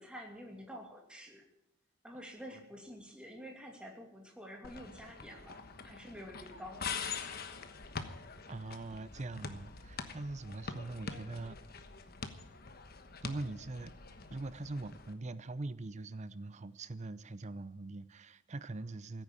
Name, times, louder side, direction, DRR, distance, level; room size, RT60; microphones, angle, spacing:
voice 1, 0.0-1.4 2.0-7.3, equal, 5° right, 2.6 m, -49 dB
sound 1, 4.6-15.1, left 5 dB, 50° left, 1.2 m, -45 dB
voice 2, 8.5-11.6 13.2-13.9 14.3-19.2, right 2 dB, 35° right, 0.6 m, -42 dB
15.5 x 9.2 x 8.5 m
head